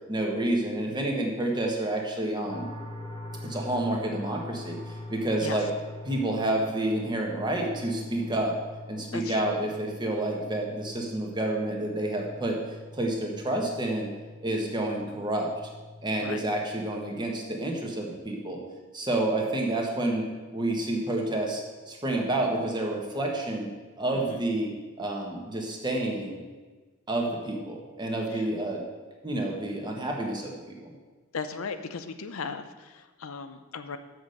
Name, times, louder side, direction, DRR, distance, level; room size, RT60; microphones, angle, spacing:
voice 1, 0.1-2.7 3.4-4.8 5.1-5.7 6.0-8.5 8.9-12.6 12.9-14.1 14.4-15.5 16.0-18.6 18.9-20.2 20.5-23.7 24.0-26.4 27.1-28.8 29.2-30.9, right 1 dB, 20° right, 0 dB, 1.4 m, -29 dB
sound 1, 2.5-17.3, left 2 dB, 25° left, 0.8 m, -43 dB
voice 2, 9.1-9.6 16.2-16.4 24.1-24.4 28.3-28.5 31.3-34.0, left 5 dB, 85° left, 9 dB, 0.6 m, -37 dB
7.0 x 6.2 x 6.4 m, 1.3 s
head